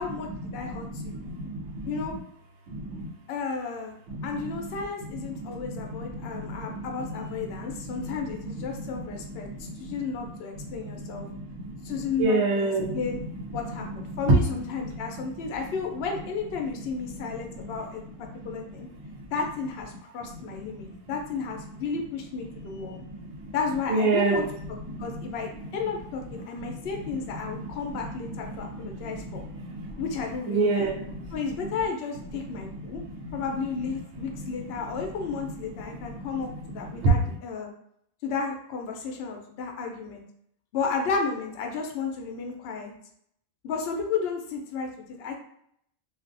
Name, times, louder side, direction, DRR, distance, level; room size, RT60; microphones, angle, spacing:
voice 1, 0.0-1.2 1.9-2.2 3.3-3.9 4.2-11.3 11.8-13.2 13.5-18.0 18.4-18.9 19.3-23.0 23.5-29.4 30.0-30.9 31.3-33.0 33.3-37.7 38.2-40.2 40.7-42.9 43.6-45.4, left 5 dB, 70° left, 2 dB, 0.8 m, -33 dB
voice 2, 0.8-2.2 2.7-3.1 4.1-4.8 5.1-6.8 7.4-8.9 9.3-10.0 10.6-13.4 13.9-14.4 18.3-18.5 19.0-19.2 20.7-20.8 22.9-23.5 23.9-24.4 24.9-25.2 25.6-25.7 26.6-26.8 27.1-27.2 27.6-27.7 28.1-29.2 29.5-30.0 30.5-31.3 32.9-33.4 35.9-36.3 37.0-37.1, right 2 dB, 80° right, -2 dB, 1.0 m, -30 dB
2.5 x 2.4 x 2.5 m, 0.71 s
omnidirectional pair, 1.2 m